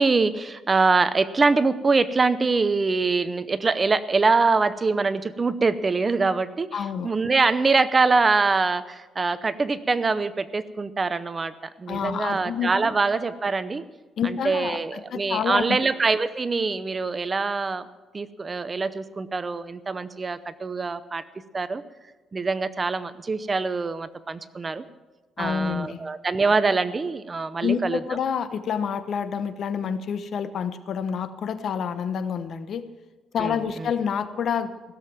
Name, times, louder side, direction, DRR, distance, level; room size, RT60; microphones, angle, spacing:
voice 1, 0.0-13.8 14.2-17.9 18.1-21.2 21.5-21.8 22.3-24.8 25.4-28.0 33.4-33.9, right 4 dB, 30° right, 14 dB, 0.7 m, -24 dB
voice 2, 6.7-7.1 11.9-12.9 14.2-15.8 25.4-26.0 27.6-32.9 33.3-34.7, left 7 dB, 65° left, 11 dB, 0.9 m, -28 dB
16.5 x 7.5 x 7.2 m, 1.2 s
cardioid pair, 90°, 0 cm